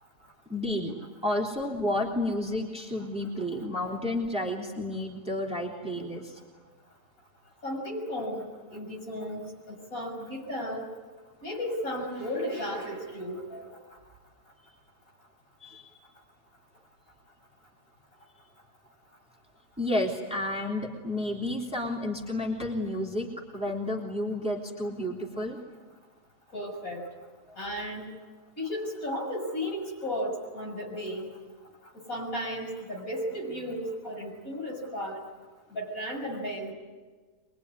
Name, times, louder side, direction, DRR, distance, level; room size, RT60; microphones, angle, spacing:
voice 1, 0.5-1.0 1.2-6.4 15.6-15.9 19.8-25.6, left 1 dB, 5° right, -2 dB, 3.4 m, -31 dB
voice 2, 7.6-8.4 8.7-10.9 11.4-13.7 26.5-27.0 27.6-28.1 28.6-31.3 32.1-35.2 35.7-36.7, equal, 60° left, 0 dB, 7.0 m, -34 dB
24.0 x 23.0 x 9.7 m, 1.4 s
omnidirectional pair, 1.7 m